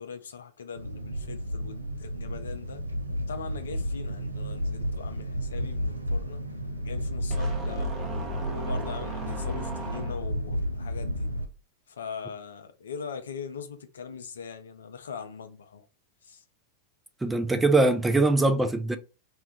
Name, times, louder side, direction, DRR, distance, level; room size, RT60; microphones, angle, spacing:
voice 1, 0.0-2.8 3.3-6.4 6.8-7.9 8.4-11.3 11.9-15.9 16.2-16.4, left 6 dB, 65° left, 0.4 m, -41 dB
sound 1, 0.8-11.5, equal, 80° right, 0.3 m, -32 dB
sound 2, 7.3-10.5, right 3 dB, 25° right, 0.7 m, -37 dB
voice 2, 17.2-19.0, right 2 dB, 10° right, 0.3 m, -22 dB
2.2 x 2.1 x 3.9 m
figure-of-eight pair, 90°, 0 cm